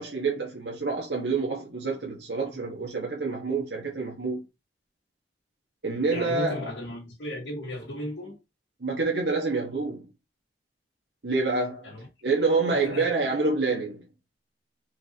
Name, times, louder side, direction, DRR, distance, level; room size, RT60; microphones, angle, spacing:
voice 1, 0.0-4.4 5.8-6.7 8.8-10.0 11.2-11.9 12.2-14.0, right 3 dB, 75° right, 1.2 m, -27 dB
voice 2, 6.1-8.4 11.8-12.1 12.7-13.3, left 1 dB, 80° left, 1.8 m, -35 dB
4.5 x 2.6 x 4.1 m
head